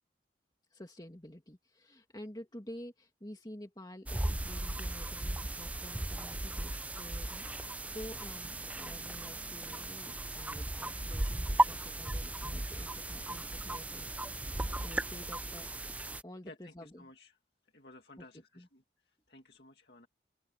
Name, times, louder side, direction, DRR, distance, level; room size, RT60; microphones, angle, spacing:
voice 1, 0.7-14.5 14.8-15.7 16.2-17.1 18.2-18.3 18.6-18.7, left 1 dB, 20° left, 2.3 m, -50 dB
sound 1, 4.1-16.2, right 2 dB, 10° right, 0.4 m, -36 dB
sound 2, 7.2-15.1, equal, 25° right, 3.9 m, -57 dB
voice 2, 16.4-17.4 17.6-20.1, left 2 dB, 60° left, 2.1 m, -56 dB
open air
head